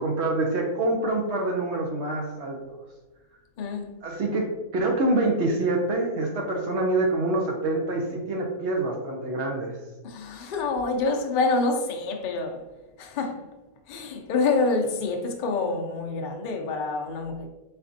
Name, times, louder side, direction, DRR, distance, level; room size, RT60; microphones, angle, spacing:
voice 1, 0.0-2.8 4.0-9.8, right 2 dB, 60° right, 0.8 m, -26 dB
voice 2, 3.6-4.0 10.0-12.6 13.0-13.4 13.9-17.5, left 3 dB, 85° left, 0.4 m, -27 dB
4.2 x 4.1 x 2.6 m
omnidirectional pair, 1.6 m